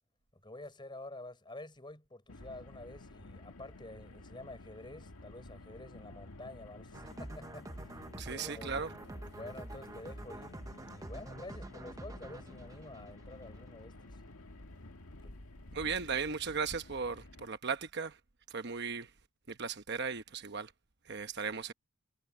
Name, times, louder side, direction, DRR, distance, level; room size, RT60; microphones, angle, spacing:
voice 1, 0.3-8.7 9.3-14.2 15.2-15.4, left 2 dB, 20° left, 5.2 m, -49 dB
Car, 2.3-17.5, left 2 dB, 85° left, 1.9 m, -52 dB
sound 1, 6.9-13.7, right 1 dB, 15° right, 0.7 m, -47 dB
voice 2, 8.2-8.9 15.7-18.2 18.5-19.1 19.5-20.7 21.1-21.7, right 5 dB, 50° right, 1.0 m, -36 dB
head